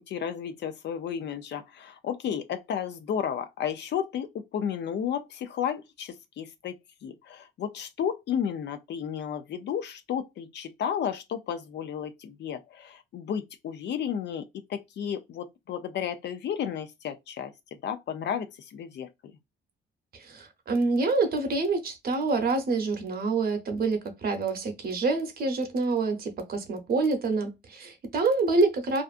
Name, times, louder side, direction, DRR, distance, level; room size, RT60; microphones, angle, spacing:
voice 1, 0.1-4.3 4.5-6.7 7.0-14.4 14.7-17.5 17.8-19.1, left 8 dB, 60° left, 0.5 m, -32 dB
voice 2, 20.3-29.0, right 3 dB, 50° right, 0.8 m, -27 dB
2.5 x 2.4 x 2.4 m
cardioid pair, 90°, 20 cm